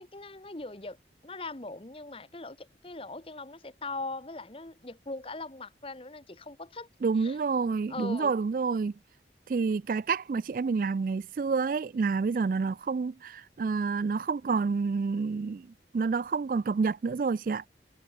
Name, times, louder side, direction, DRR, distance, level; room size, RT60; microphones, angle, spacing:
voice 1, 0.0-6.9 7.2-7.4 7.9-8.3 12.4-12.5, left 2 dB, 30° left, 1.2 m, -40 dB
voice 2, 7.0-8.9 9.5-17.6, right 4 dB, 50° right, 0.3 m, -28 dB
head